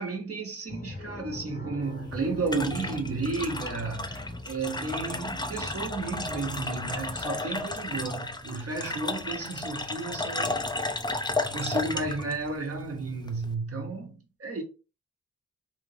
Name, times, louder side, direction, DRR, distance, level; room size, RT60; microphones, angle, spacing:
voice 1, 0.0-10.7 11.4-14.6, right 3 dB, 50° right, 1.1 m, -33 dB
sound 1, 0.7-7.3, left 1 dB, 35° left, 0.9 m, -41 dB
sound 2, 1.8-13.5, left 2 dB, 15° left, 0.5 m, -33 dB
3.3 x 2.6 x 3.3 m
cardioid pair, 70°, 29 cm